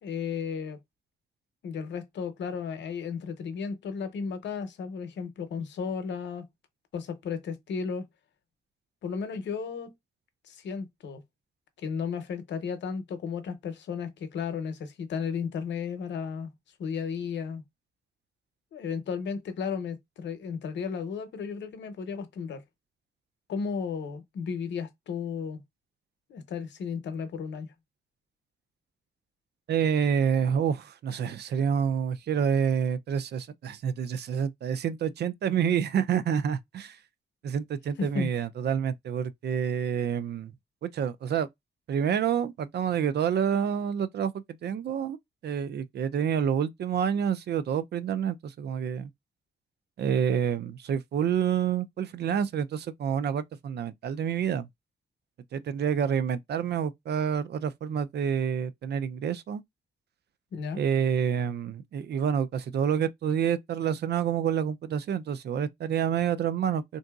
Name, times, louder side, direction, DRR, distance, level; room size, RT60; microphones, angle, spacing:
voice 1, 0.0-0.8 1.6-6.4 6.9-8.0 9.0-9.9 10.4-11.2 11.8-16.5 16.8-17.6 18.7-22.6 23.5-25.6 26.3-27.7 38.0-38.3 60.5-60.8, left 6 dB, 90° left, 0.7 m, -34 dB
voice 2, 29.7-37.0 37.4-40.5 40.8-41.5 41.9-45.2 45.4-49.1 50.0-54.7 55.5-59.6 60.7-67.0, right 8 dB, 65° right, 0.4 m, -28 dB
3.6 x 2.7 x 2.3 m
cardioid pair, 70°, 18 cm